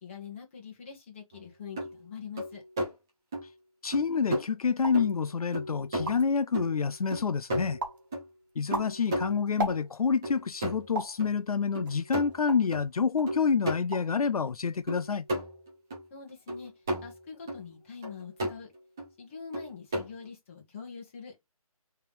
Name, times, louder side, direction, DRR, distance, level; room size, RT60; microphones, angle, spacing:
voice 1, 0.0-2.6 16.1-16.7 17.0-18.7 19.2-21.5, left 6 dB, 20° left, 1.6 m, -44 dB
sound 1, 1.3-1.4 1.8-1.9 2.4-2.9 3.3-3.5 3.9-4.0 4.3-4.5 4.9-5.2 5.5-6.3 6.5-8.2 8.7-9.8 10.2-10.9 11.2-11.3 11.7-12.8 13.3-13.8 14.2-14.3 14.9-16.0 16.5-17.2 17.5-17.6 18.0-18.6 19.0-19.1 19.5-20.2, right 1 dB, 5° right, 0.5 m, -34 dB
voice 2, 3.8-7.8 8.6-15.2, left 5 dB, 75° left, 0.5 m, -28 dB
sound 2, 4.8-5.1 5.6-5.7 5.9-6.4 6.9-7.4 7.8-8.1 8.5-10.2 10.9-11.2 11.9-12.8 13.2-13.4 13.7-14.2 14.4-14.9, right 2 dB, 35° right, 1.5 m, -37 dB
4.6 x 3.4 x 3.2 m
figure-of-eight pair, 165°, 19 cm